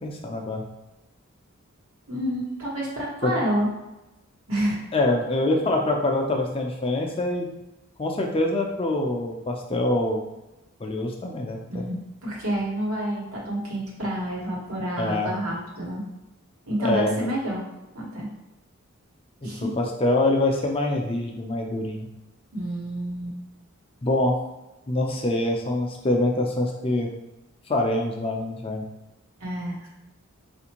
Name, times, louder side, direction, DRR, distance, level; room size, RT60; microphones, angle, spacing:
voice 1, 0.0-0.6 3.2-3.3 4.9-7.5 8.0-10.2 10.8-11.9 15.0-15.3 16.8-17.2 19.4-22.1 24.0-24.4 24.9-27.1 27.7-28.8, left 2 dB, 25° left, 1 dB, 0.4 m, -25 dB
voice 2, 2.1-3.7 4.5-4.8 11.7-16.0 16.7-17.6 17.9-18.3 19.4-19.7 22.5-23.4 29.4-29.9, right 1 dB, 85° right, -4 dB, 1.2 m, -28 dB
4.3 x 2.5 x 2.9 m, 1.0 s
head